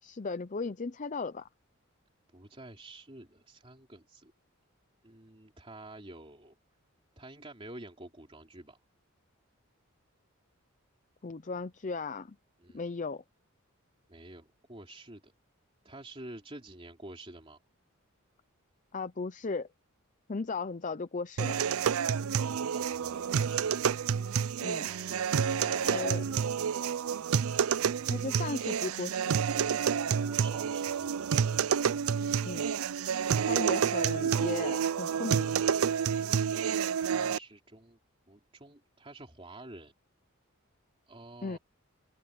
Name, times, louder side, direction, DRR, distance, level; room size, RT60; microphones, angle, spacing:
voice 1, 0.0-1.5 11.2-12.4 12.7-13.2 18.9-19.7 20.3-21.6 24.6-24.9 25.8-26.2 28.1-29.4 32.4-32.7 33.4-35.6 41.4-41.6, left 4 dB, 35° left, 0.6 m, -36 dB
voice 2, 2.3-4.3 5.0-6.5 7.2-8.8 12.6-12.8 14.1-15.3 15.8-17.6 22.4-23.8 24.8-26.4 30.0-31.6 37.0-38.0 38.3-39.9 41.1-41.6, right 2 dB, 25° right, 3.1 m, -49 dB
sound 1, 21.4-37.4, right 7 dB, 85° right, 0.4 m, -29 dB
head